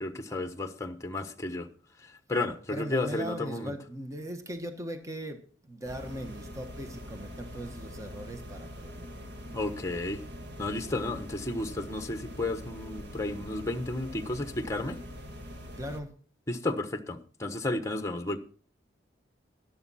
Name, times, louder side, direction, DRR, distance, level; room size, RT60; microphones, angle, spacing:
voice 1, 0.0-1.7 2.0-3.7 9.5-10.2 10.6-15.0 16.5-18.4, left 2 dB, 15° left, 1.1 m, -33 dB
voice 2, 2.7-9.1 10.6-10.9 15.8-16.1, right 1 dB, 15° right, 1.3 m, -39 dB
sound 1, 5.8-16.0, equal, 65° right, 1.6 m, -43 dB
12.0 x 11.5 x 4.2 m
head